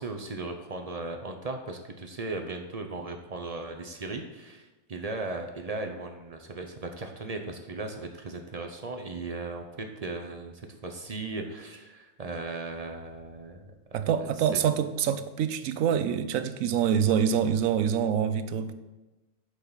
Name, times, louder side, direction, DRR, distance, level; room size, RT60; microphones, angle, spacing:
voice 1, 0.0-14.6, right 3 dB, 45° right, 0.5 m, -37 dB
voice 2, 13.9-18.7, right 8 dB, 70° right, 1.0 m, -26 dB
8.8 x 6.6 x 4.0 m
omnidirectional pair, 1.6 m